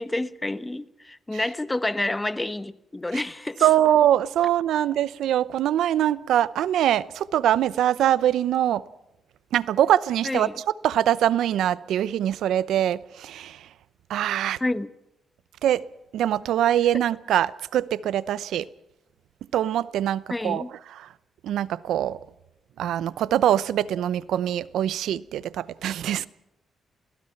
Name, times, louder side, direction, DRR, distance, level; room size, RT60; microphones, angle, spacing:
voice 1, 0.0-3.7 10.2-10.5 14.6-14.9 20.3-20.7, left 2 dB, 15° left, 1.1 m, -29 dB
voice 2, 3.6-8.8 9.5-10.5 10.8-13.7 14.1-14.6 15.6-15.8 16.1-18.7 19.5-20.6 21.0-21.1 21.4-22.2 22.8-26.3, right 11 dB, 85° right, 0.7 m, -23 dB
28.0 x 17.0 x 5.9 m
cardioid pair, 85°, 0 cm